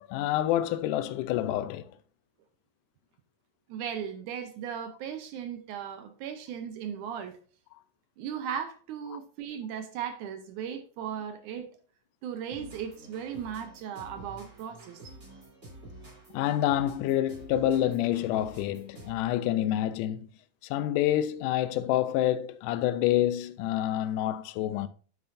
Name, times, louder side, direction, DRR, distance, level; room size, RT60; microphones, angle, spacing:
voice 1, 0.0-1.9 16.3-20.3 20.6-24.9, left 12 dB, 80° left, 1.9 m, -27 dB
voice 2, 3.7-7.4 8.2-11.7 12.2-15.2, right 8 dB, 75° right, 1.9 m, -37 dB
sound 1, 12.5-19.4, right 1 dB, 20° right, 3.2 m, -49 dB
9.5 x 7.7 x 2.6 m
omnidirectional pair, 4.0 m